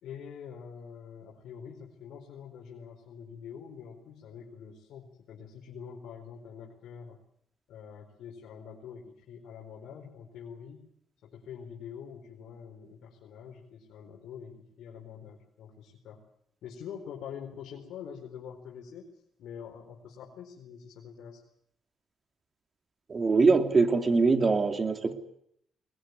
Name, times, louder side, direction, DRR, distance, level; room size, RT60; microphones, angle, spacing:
voice 1, 0.0-7.2 7.7-10.9 11.2-16.2 16.6-21.4, left 7 dB, 75° left, -1 dB, 4.6 m, -45 dB
voice 2, 23.1-25.1, right 4 dB, 35° right, 7 dB, 2.9 m, -23 dB
22.0 x 21.0 x 9.6 m, 0.74 s
cardioid pair, 90°, 0 cm